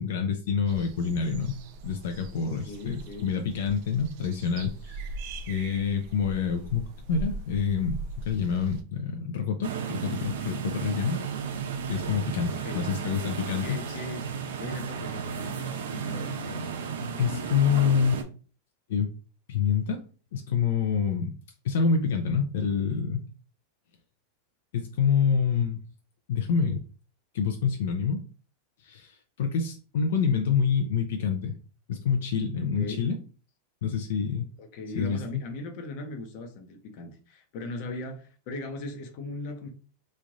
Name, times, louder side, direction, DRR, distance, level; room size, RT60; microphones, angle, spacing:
voice 1, 0.0-1.6 1.8-5.1 5.5-6.8 7.1-11.2 11.9-14.0 17.2-18.2 18.9-19.1 19.5-20.1 20.3-21.3 21.6-23.2 24.7-25.8 26.3-26.8 27.3-28.2 28.8-31.6 31.9-33.2 33.8-34.4 34.9-35.4, left 6 dB, 70° left, 4 dB, 0.5 m, -27 dB
sound 1, 0.7-8.8, right 2 dB, 45° right, 0.5 m, -41 dB
voice 2, 2.4-3.3 12.5-12.8 13.6-14.3 14.6-16.6 32.7-33.0 34.6-39.7, left 2 dB, 45° left, 4 dB, 0.8 m, -39 dB
sound 2, 9.6-18.2, right 6 dB, 85° right, 0.8 m, -34 dB
3.2 x 2.5 x 3.9 m, 0.37 s
supercardioid pair, 165°, 0 cm